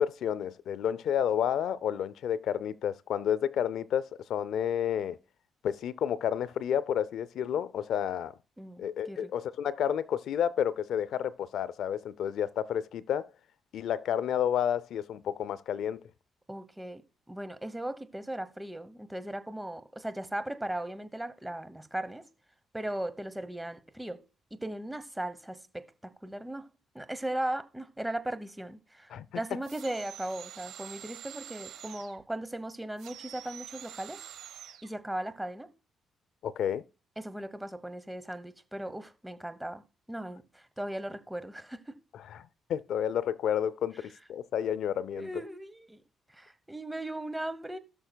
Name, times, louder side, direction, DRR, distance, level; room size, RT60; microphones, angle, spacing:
voice 1, 0.0-5.2 5.6-8.3 8.8-13.3 13.7-16.0 29.1-29.3 36.4-36.8 42.1-42.4 42.7-45.3, left 9 dB, 75° left, 0.4 m, -30 dB
voice 2, 8.6-9.3 16.5-17.0 17.3-22.2 22.7-24.2 24.5-26.7 26.9-34.2 34.8-35.7 37.2-39.8 40.1-42.0 45.2-46.0 46.3-47.8, right 1 dB, 10° right, 0.9 m, -37 dB
sound 1, 29.6-32.2 33.0-34.9, right 10 dB, 80° right, 1.2 m, -46 dB
17.0 x 6.5 x 2.2 m
cardioid pair, 90°, 0 cm